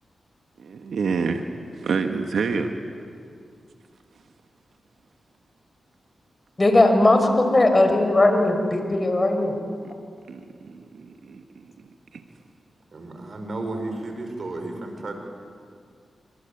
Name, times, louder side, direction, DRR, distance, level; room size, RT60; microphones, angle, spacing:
voice 1, 0.6-1.4 1.8-2.7 9.8-9.9 10.3-11.7 12.1-12.2, right 5 dB, 80° right, 6 dB, 1.6 m, -28 dB
voice 2, 6.6-9.5, left 2 dB, 30° left, 6 dB, 5.5 m, -18 dB
voice 3, 12.9-15.1, right 2 dB, 60° right, 5 dB, 5.5 m, -33 dB
27.5 x 24.5 x 8.7 m, 2.2 s
cardioid pair, 45°, 0 cm